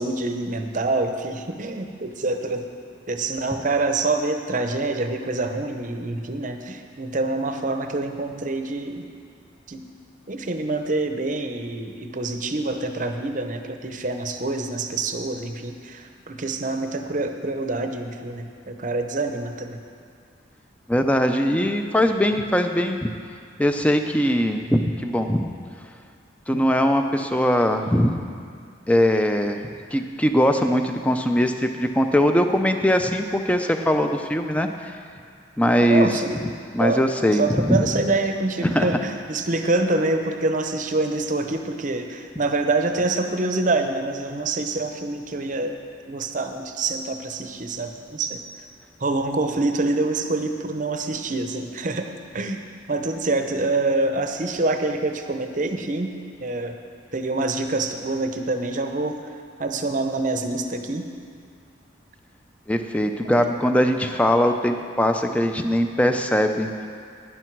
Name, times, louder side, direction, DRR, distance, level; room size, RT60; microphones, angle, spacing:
voice 1, 0.0-2.7 3.1-9.0 9.7-9.9 10.3-19.8 26.5-26.7 35.8-36.4 36.8-37.0 37.3-45.8 46.1-48.4 49.0-52.1 52.3-52.6 52.9-56.1 56.4-56.8 57.1-61.1 63.2-63.6, right 2 dB, 40° right, 6 dB, 0.7 m, -26 dB
voice 2, 20.9-23.1 23.6-25.5 26.5-28.2 28.9-29.6 29.9-34.7 35.6-36.1 36.7-37.8 38.6-38.9 62.7-66.9, equal, 5° left, 6 dB, 0.5 m, -21 dB
12.0 x 10.0 x 4.6 m, 2.2 s
head